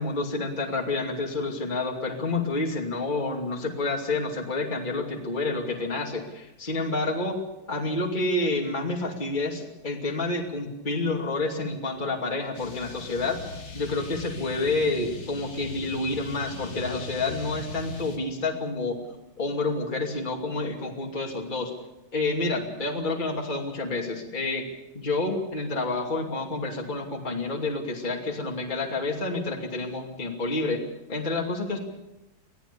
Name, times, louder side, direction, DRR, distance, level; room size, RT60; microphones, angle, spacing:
voice 1, 0.0-7.4 7.7-13.4 13.7-19.0 19.4-21.7 22.1-24.6 24.9-30.8 31.1-31.8, left 2 dB, 20° left, 0 dB, 2.8 m, -29 dB
sound 1, 12.5-18.2, left 2 dB, 85° left, 3.5 m, -39 dB
25.5 x 17.5 x 6.9 m, 0.94 s
omnidirectional pair, 2.2 m